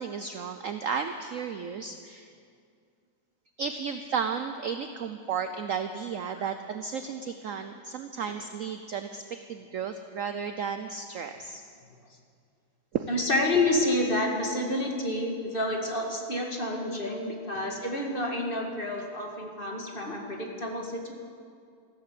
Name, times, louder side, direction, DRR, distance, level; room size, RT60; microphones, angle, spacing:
voice 1, 0.0-2.3 3.6-11.6 12.9-13.1, right 6 dB, 75° right, 8 dB, 0.7 m, -33 dB
voice 2, 13.1-21.1, left 1 dB, 30° left, 1 dB, 1.8 m, -29 dB
14.5 x 13.0 x 7.5 m, 2.2 s
omnidirectional pair, 2.1 m